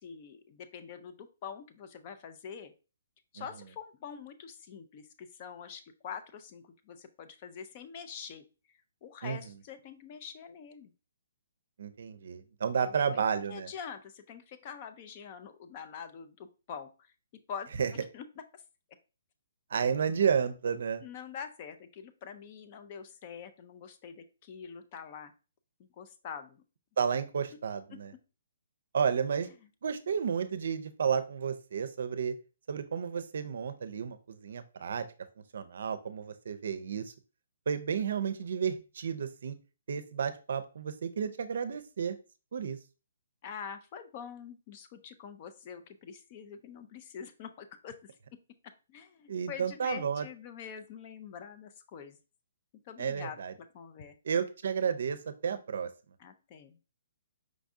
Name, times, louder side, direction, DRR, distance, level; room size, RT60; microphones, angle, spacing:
voice 1, 0.0-2.7 3.3-8.4 9.0-10.9 12.8-13.2 13.5-16.9 17.5-18.2 18.5-18.6 21.0-25.3 25.8-26.6 43.4-48.0 48.9-52.2 52.9-53.4 53.7-54.1 56.2-56.8, left 7 dB, 30° left, 9 dB, 0.4 m, -45 dB
voice 2, 11.8-13.7 17.8-17.9 19.7-21.0 27.0-28.1 28.9-29.5 29.8-32.3 32.7-35.1 35.5-37.1 37.7-39.5 39.9-42.2 42.5-42.8 49.3-50.3 53.0-53.5 54.2-55.9, right 7 dB, 60° right, 12 dB, 0.5 m, -32 dB
5.0 x 2.6 x 3.5 m, 0.33 s
hypercardioid pair, 170°, 0 cm